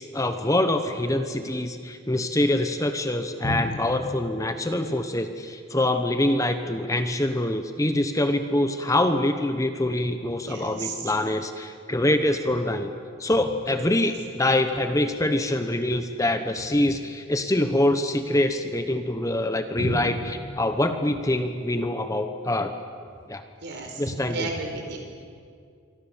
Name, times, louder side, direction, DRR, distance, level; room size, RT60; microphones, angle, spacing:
voice 1, 0.0-12.9 13.2-22.7 23.3-23.4 24.0-24.5, left 1 dB, 15° left, 8 dB, 1.0 m, -25 dB
voice 2, 10.4-10.9 19.8-20.0 23.6-24.0 24.3-25.0, right 2 dB, 55° right, 3 dB, 4.6 m, -31 dB
27.0 x 24.5 x 7.3 m, 2.3 s
head